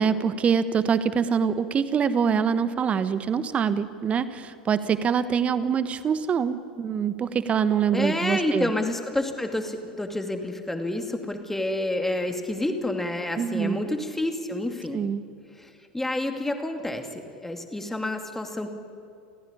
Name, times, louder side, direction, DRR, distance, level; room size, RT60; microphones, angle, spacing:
voice 1, 0.0-8.7 13.4-13.8 14.9-15.2, right 7 dB, 25° right, 13 dB, 1.3 m, -24 dB
voice 2, 7.9-15.0 15.6-15.7 15.9-18.7, left 1 dB, 5° left, 5 dB, 2.6 m, -29 dB
29.0 x 16.0 x 9.9 m, 2.4 s
figure-of-eight pair, 80°, 5 cm